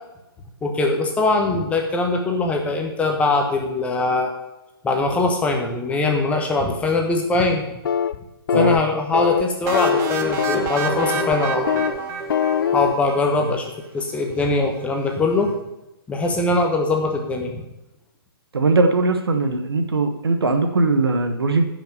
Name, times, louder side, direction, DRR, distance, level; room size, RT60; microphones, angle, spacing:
voice 1, 0.6-4.3 4.8-7.7 8.5-11.9 12.7-13.7 13.9-15.5 16.1-17.6, left 3 dB, 10° left, 2 dB, 1.3 m, -21 dB
sound 1, 7.8-8.2 8.5-8.8 9.1-9.4 9.7-10.7 11.0-11.3 11.7-12.0 12.3-12.9, left 7 dB, 60° left, 0.6 m, -22 dB
sound 2, 9.7-13.4, right 5 dB, 20° right, 1.1 m, -28 dB
voice 2, 18.5-21.6, right 3 dB, 75° right, 6 dB, 1.4 m, -20 dB
10.5 x 5.9 x 6.7 m, 0.94 s
hypercardioid pair, 135°, 13 cm